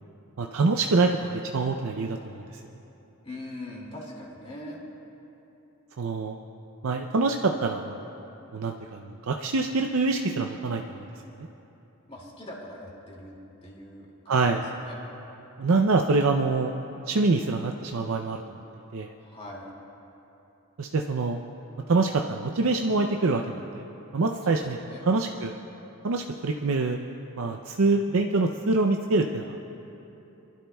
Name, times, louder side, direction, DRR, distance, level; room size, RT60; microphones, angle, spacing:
voice 1, 0.4-2.5 6.0-6.4 6.8-8.0 8.5-11.1 14.3-14.6 15.6-16.7 17.1-18.4 18.9-19.1 20.8-21.4 21.9-23.8 24.1-24.8 25.1-25.5 26.0-27.0 27.4-29.6, right 3 dB, 65° right, 3 dB, 0.5 m, -25 dB
voice 2, 3.2-4.8 12.1-13.3 13.6-15.0 19.2-19.7 24.4-25.1, left 1 dB, 25° left, -3 dB, 2.3 m, -42 dB
27.0 x 12.0 x 2.3 m, 3.0 s
head